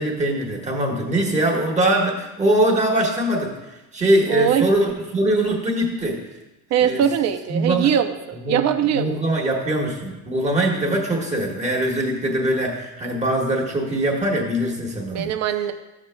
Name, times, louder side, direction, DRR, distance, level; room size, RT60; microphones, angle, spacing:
voice 1, 0.0-6.2 6.8-7.0 7.5-7.9 8.3-15.3, right 1 dB, 20° right, -1 dB, 1.5 m, -22 dB
voice 2, 4.3-4.7 6.7-9.4 15.1-15.7, right 9 dB, 45° right, 9 dB, 0.6 m, -21 dB
13.0 x 7.3 x 2.2 m, 1.0 s
cardioid pair, 145°, 37 cm